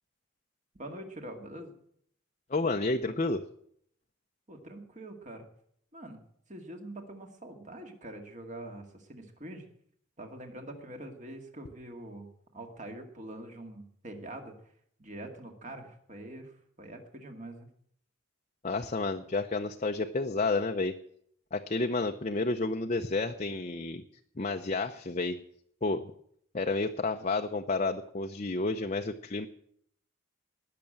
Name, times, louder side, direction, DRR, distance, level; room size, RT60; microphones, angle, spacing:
voice 1, 0.7-1.8 4.5-5.5 5.9-6.2 6.5-9.7 10.2-12.3 12.5-14.6 15.0-17.7, right 1 dB, 35° right, 4 dB, 2.2 m, -44 dB
voice 2, 2.5-3.4 18.6-20.9 21.5-24.0 24.4-25.4 25.8-26.1 26.5-29.5, left 3 dB, 35° left, 4 dB, 0.7 m, -30 dB
19.5 x 6.8 x 8.7 m, 0.68 s
head